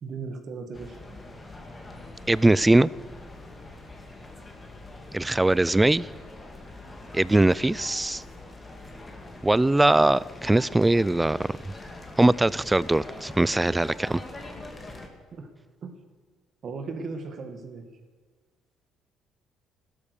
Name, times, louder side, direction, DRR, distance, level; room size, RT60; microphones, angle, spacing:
voice 1, 0.0-1.0 15.3-15.5 15.8-15.9 16.6-17.9, right 4 dB, 45° right, 6 dB, 1.9 m, -36 dB
sound 1, 0.7-15.1, left 2 dB, 15° left, 2.2 m, -43 dB
voice 2, 2.3-2.9 5.1-6.1 7.1-8.2 9.4-11.6 12.2-14.2, right 2 dB, 10° right, 21 dB, 0.4 m, -21 dB
16.0 x 12.5 x 6.9 m, 1.5 s
cardioid pair, 130°, 0 cm